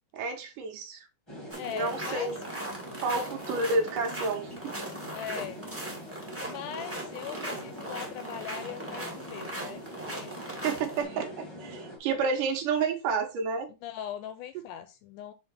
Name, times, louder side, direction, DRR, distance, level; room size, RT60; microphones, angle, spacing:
voice 1, 0.1-1.1 1.7-2.4 3.0-4.7 10.6-13.7, right 4 dB, 70° right, 2.6 m, -30 dB
sound 1, 1.3-12.0, right 1 dB, 15° left, 1.1 m, -43 dB
voice 2, 1.5-2.3 5.1-5.6 6.4-10.3 13.8-15.3, left 10 dB, 80° left, 1.9 m, -40 dB
sound 2, 1.5-11.0, right 1 dB, 10° right, 0.7 m, -39 dB
6.3 x 4.1 x 4.3 m
omnidirectional pair, 4.0 m